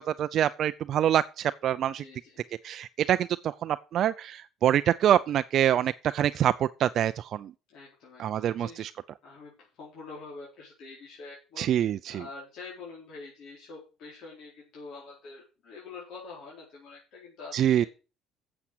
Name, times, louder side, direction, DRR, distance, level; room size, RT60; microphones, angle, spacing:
voice 1, 0.0-2.0 2.6-7.5 8.2-8.9 11.6-12.2 17.5-17.9, right 11 dB, 55° right, 0.4 m, -25 dB
voice 2, 1.9-2.4 7.7-8.9 9.2-9.5 9.8-17.9, left 4 dB, 65° left, 4.4 m, -46 dB
8.7 x 7.1 x 7.8 m
cardioid pair, 120°, 0 cm